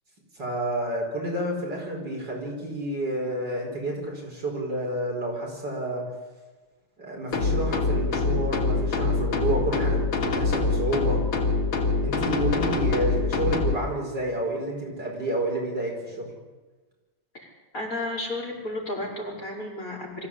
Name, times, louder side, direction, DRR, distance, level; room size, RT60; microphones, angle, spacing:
voice 1, 0.4-6.1 7.0-11.2 12.0-16.3, right 1 dB, 55° right, -1 dB, 5.8 m, -30 dB
sound 1, 7.3-13.8, left 3 dB, 85° left, 3.8 m, -24 dB
voice 2, 17.4-20.3, left 1 dB, 40° left, -3 dB, 5.6 m, -33 dB
24.5 x 15.5 x 8.7 m, 1.3 s
omnidirectional pair, 2.3 m